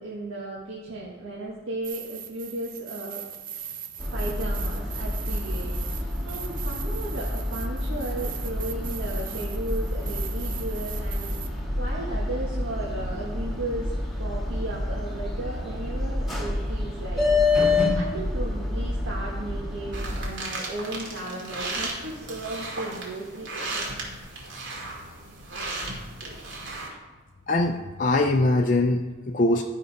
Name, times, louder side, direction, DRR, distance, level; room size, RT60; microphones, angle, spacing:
voice 1, 0.0-3.2 4.1-17.4 17.9-23.9, right 2 dB, 90° right, -5 dB, 1.5 m, -35 dB
sound 1, 1.8-11.5, right 10 dB, 45° right, 0.8 m, -40 dB
sound 2, 4.0-20.3, left 2 dB, ahead, 1.6 m, -28 dB
sound 3, 19.9-26.9, right 2 dB, 70° right, 2.2 m, -35 dB
voice 2, 27.5-29.6, left 2 dB, 40° left, 3 dB, 0.5 m, -22 dB
12.5 x 5.4 x 5.3 m, 1.3 s
head